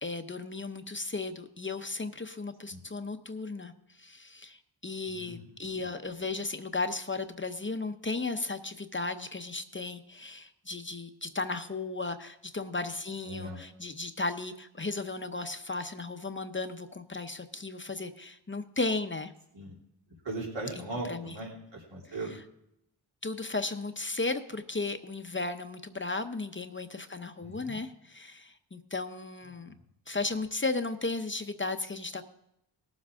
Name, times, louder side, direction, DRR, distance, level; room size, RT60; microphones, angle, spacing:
voice 1, 0.0-3.7 4.0-19.3 20.8-21.3 23.2-29.7 30.1-32.2, left 3 dB, 25° left, 8 dB, 0.7 m, -35 dB
voice 2, 5.1-5.6 13.2-13.6 19.5-19.8 20.2-22.4 27.4-27.8 29.7-29.8, right 2 dB, 85° right, -2 dB, 3.1 m, -39 dB
19.0 x 7.5 x 3.6 m, 0.80 s
wide cardioid pair, 90°, 43 cm